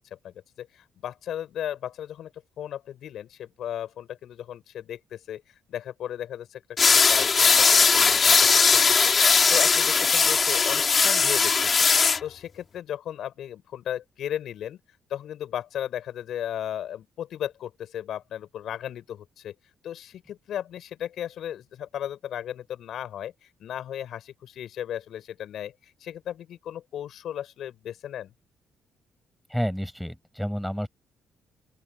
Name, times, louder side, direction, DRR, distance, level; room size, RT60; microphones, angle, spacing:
voice 1, 0.1-2.3 2.6-5.4 5.7-6.6 6.9-9.1 9.5-11.9 12.2-14.8 15.1-19.5 19.8-28.3, left 10 dB, 70° left, 5.8 m, -35 dB
sound 1, 6.8-12.2, left 5 dB, 40° left, 2.8 m, -19 dB
voice 2, 29.5-30.9, equal, ahead, 6.8 m, -30 dB
open air
cardioid pair, 90°, 0 cm